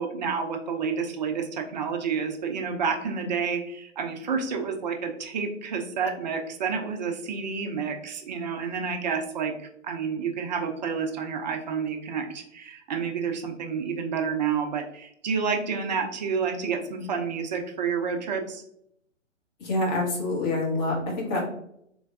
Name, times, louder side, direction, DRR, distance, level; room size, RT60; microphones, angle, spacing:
voice 1, 0.0-18.6, right 6 dB, 35° right, 4 dB, 0.5 m, -29 dB
voice 2, 19.6-21.4, left 2 dB, 30° left, -2 dB, 1.3 m, -26 dB
3.8 x 3.3 x 2.4 m, 0.74 s
figure-of-eight pair, 130°, 38 cm